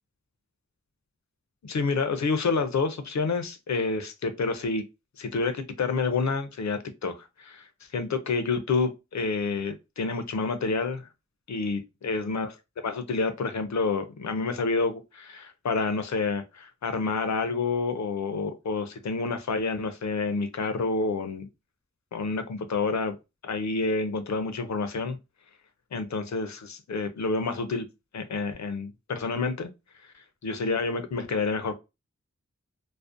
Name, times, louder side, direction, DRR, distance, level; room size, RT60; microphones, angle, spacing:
voice 1, 1.6-4.8 5.2-7.7 7.9-11.1 11.5-12.5 12.8-21.5 22.1-23.1 23.4-25.2 25.9-27.9 28.1-29.7 30.4-31.7, left 4 dB, 70° left, 0.5 m, -28 dB
2.5 x 2.0 x 2.4 m
wide cardioid pair, 55°, 29 cm